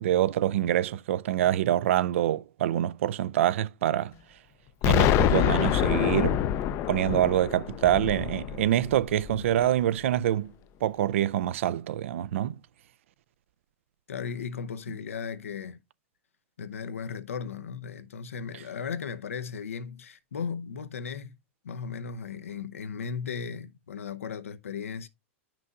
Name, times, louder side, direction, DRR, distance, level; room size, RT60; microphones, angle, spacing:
voice 1, 0.0-4.1 4.8-6.4 6.9-10.5 10.8-12.6, right 12 dB, 70° right, 0.5 m, -25 dB
Explosion, 4.8-9.7, left 11 dB, 40° left, 0.5 m, -26 dB
voice 2, 14.1-15.8 16.6-21.4 21.6-25.1, left 6 dB, 90° left, 0.7 m, -36 dB
9.6 x 6.0 x 2.4 m
hypercardioid pair, 110°, 7 cm